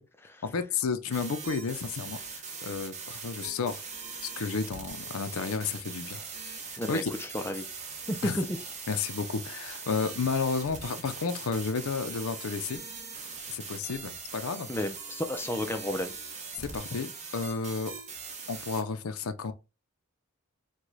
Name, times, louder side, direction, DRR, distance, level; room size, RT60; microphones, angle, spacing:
voice 1, 0.4-3.8 4.4-6.2 6.7-7.1 8.2-8.4 8.9-12.8 13.5-14.7 16.6-17.9 18.5-19.5, left 5 dB, 70° left, 0.5 m, -32 dB
sound 1, 1.1-18.8, right 5 dB, 30° right, 0.9 m, -41 dB
voice 2, 6.8-7.6 8.1-8.4 14.7-16.1, left 1 dB, 10° left, 0.4 m, -32 dB
4.7 x 2.2 x 3.9 m
head